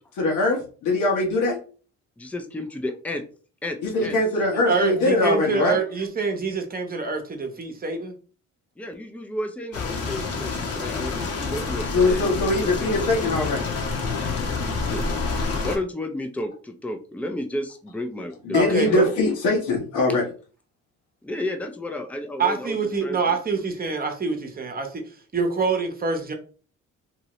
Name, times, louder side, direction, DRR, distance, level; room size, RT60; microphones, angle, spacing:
voice 1, 0.1-1.6 3.8-5.8 11.9-13.6 18.4-20.2, left 2 dB, 85° left, 1 dB, 1.1 m, -22 dB
voice 2, 2.2-3.2 3.6-4.1 8.8-12.9 14.9-15.1 15.6-19.0 21.2-23.4, left 1 dB, 5° left, 6 dB, 0.4 m, -32 dB
voice 3, 4.5-8.1 18.5-19.0 22.4-25.0 25.3-26.3, right 4 dB, 30° right, 4 dB, 0.8 m, -25 dB
sound 1, 9.7-15.8, left 4 dB, 55° left, 0.9 m, -28 dB
2.8 x 2.7 x 3.0 m, 0.39 s
cardioid pair, 90°, 30 cm